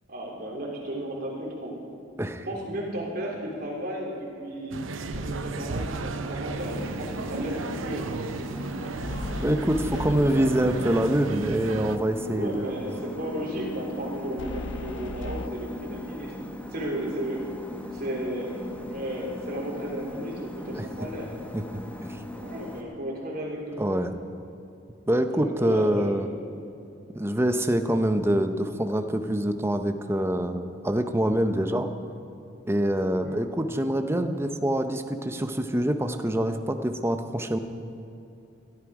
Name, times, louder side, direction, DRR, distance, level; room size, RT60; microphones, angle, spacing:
voice 1, 0.1-1.7 2.5-4.8 5.2-8.1 12.3-16.3 16.7-17.4 17.9-21.3 22.3-23.8 25.3-26.2 33.2-33.4, right 1 dB, 50° right, -2 dB, 3.3 m, -34 dB
sound 1, 4.7-12.0, right 3 dB, 85° right, 0.7 m, -34 dB
sound 2, 5.1-5.7 8.9-11.0 14.4-15.5, left 3 dB, 65° left, 0.5 m, -37 dB
sound 3, 6.6-22.8, left 1 dB, 10° left, 1.0 m, -39 dB
voice 2, 9.4-13.0 20.7-20.9 21.5-21.8 22.1-22.2 23.8-24.1 25.1-26.3 27.1-31.9 32.7-37.6, right 1 dB, 15° right, 7 dB, 0.7 m, -25 dB
17.0 x 13.5 x 4.8 m, 2.7 s
head